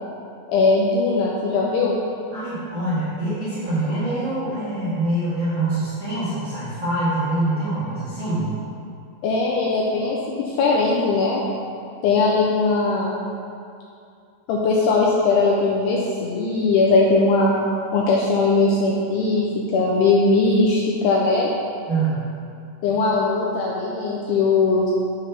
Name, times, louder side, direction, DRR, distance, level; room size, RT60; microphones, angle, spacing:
voice 1, 0.5-2.0 9.2-11.4 12.0-13.2 14.5-17.5 17.9-19.5 19.7-21.5 22.8-24.9, left 3 dB, 85° left, -3 dB, 2.4 m, -19 dB
voice 2, 2.3-8.5 21.9-22.2, right 2 dB, 90° right, -13 dB, 1.1 m, -24 dB
7.7 x 3.4 x 5.7 m, 2.5 s
omnidirectional pair, 5.3 m